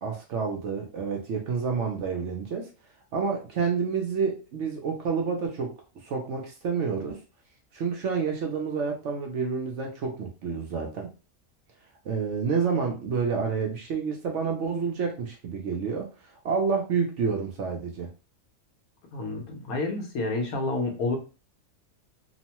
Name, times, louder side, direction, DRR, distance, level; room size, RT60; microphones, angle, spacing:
voice 1, 0.0-2.7 3.1-5.7 6.0-7.2 7.7-11.1 12.0-16.1 16.4-18.1, right 5 dB, 65° right, 2 dB, 0.8 m, -29 dB
voice 2, 19.1-21.2, left 3 dB, 80° left, 1 dB, 1.2 m, -29 dB
3.0 x 2.1 x 2.8 m, 0.33 s
omnidirectional pair, 1.5 m